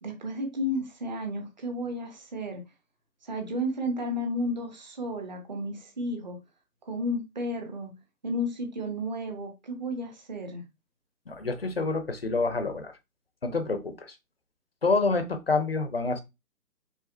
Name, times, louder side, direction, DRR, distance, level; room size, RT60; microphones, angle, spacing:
voice 1, 0.0-2.6 3.2-6.4 6.9-7.9 8.2-10.6, left 1 dB, 30° right, 0.9 m, -32 dB
voice 2, 11.3-12.9 13.4-14.1 14.8-16.2, left 3 dB, 40° left, 0.5 m, -27 dB
4.9 x 3.6 x 2.6 m
hypercardioid pair, 160°, 47 cm